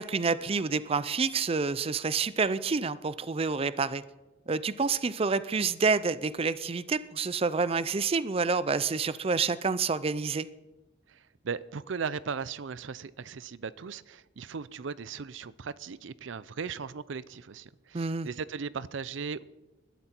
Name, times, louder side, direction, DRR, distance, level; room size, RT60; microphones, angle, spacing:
voice 1, 0.0-4.0 4.5-10.5 17.9-18.3, right 4 dB, 30° right, 0.5 m, -28 dB
voice 2, 11.1-19.4, right 5 dB, 80° right, 0.5 m, -37 dB
20.5 x 12.5 x 4.5 m
head